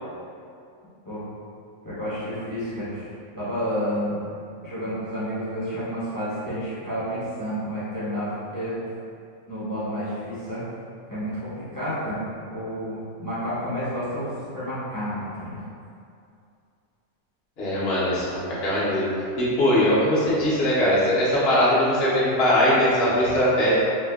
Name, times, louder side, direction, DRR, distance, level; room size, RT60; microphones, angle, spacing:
voice 1, 1.8-4.3 4.6-8.8 9.5-10.6 11.1-11.3 11.7-12.2 12.5-14.3 14.5-15.6, equal, 20° left, -12 dB, 0.8 m, -30 dB
voice 2, 17.6-19.1 19.4-23.8, equal, 55° left, -9 dB, 1.0 m, -21 dB
4.1 x 2.4 x 2.3 m, 2.5 s
omnidirectional pair, 1.4 m